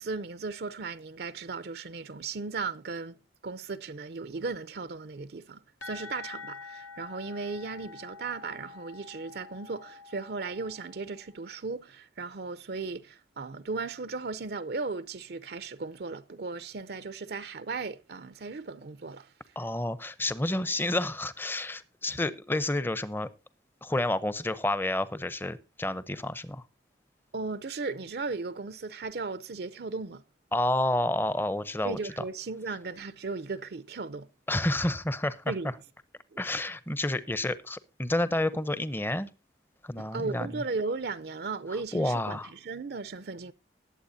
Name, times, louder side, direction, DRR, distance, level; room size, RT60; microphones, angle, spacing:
voice 1, 0.0-3.2 3.4-19.3 27.3-30.2 31.8-34.3 35.5-35.7 40.0-43.5, right 4 dB, 55° right, 0.5 m, -36 dB
sound 1, 5.8-11.4, left 4 dB, 85° left, 1.7 m, -47 dB
voice 2, 19.6-23.3 23.8-26.6 30.5-32.2 34.5-35.7 36.4-39.3 39.8-40.6 41.9-42.5, left 1 dB, 10° left, 0.6 m, -30 dB
20.0 x 7.9 x 2.7 m
head